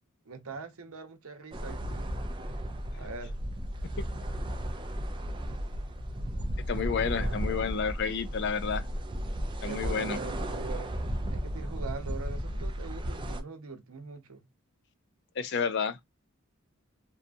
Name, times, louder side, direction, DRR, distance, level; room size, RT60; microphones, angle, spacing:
voice 1, 0.3-2.1 2.9-3.4 6.8-7.3 9.6-10.9 11.3-14.4, right 4 dB, 80° right, 0.7 m, -42 dB
sound 1, 1.5-13.4, equal, 20° right, 0.4 m, -34 dB
voice 2, 6.7-8.9 9.6-10.2 15.4-16.0, left 6 dB, 55° left, 0.4 m, -30 dB
2.7 x 2.3 x 2.4 m
head